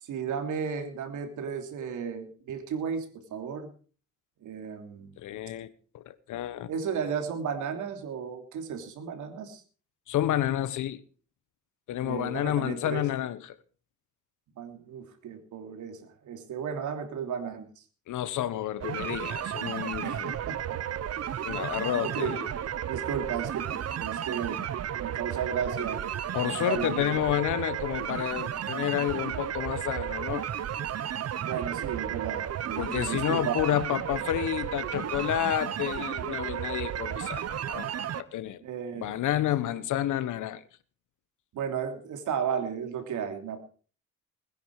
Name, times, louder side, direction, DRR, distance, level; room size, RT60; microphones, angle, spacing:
voice 1, 0.0-3.7 4.4-5.1 6.7-9.6 12.0-13.0 14.6-17.8 20.0-20.8 22.0-22.3 22.8-24.6 25.0-26.0 26.7-27.1 31.4-33.6 38.6-39.2 39.6-39.8 41.5-43.6, right 7 dB, 80° right, 3.2 m, -34 dB
voice 2, 5.2-5.7 5.9-6.7 10.1-11.0 11.9-13.6 18.1-20.4 21.4-22.5 26.3-30.5 32.8-38.6 39.0-40.6, left 12 dB, 80° left, 1.3 m, -30 dB
sound 1, 18.8-38.2, right 10 dB, 55° right, 1.0 m, -33 dB
21.0 x 10.0 x 4.9 m
cardioid pair, 90°, 30 cm